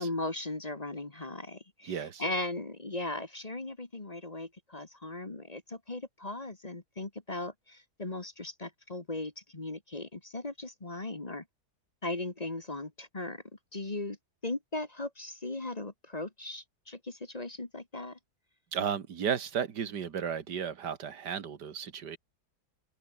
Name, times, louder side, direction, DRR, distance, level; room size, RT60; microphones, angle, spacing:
voice 1, 0.0-11.4 12.0-13.4 13.7-14.2 14.4-18.2, left 2 dB, 25° left, 1.6 m, -38 dB
voice 2, 1.8-2.2 18.7-22.2, right 7 dB, 85° right, 2.1 m, -34 dB
open air
omnidirectional pair, 1.8 m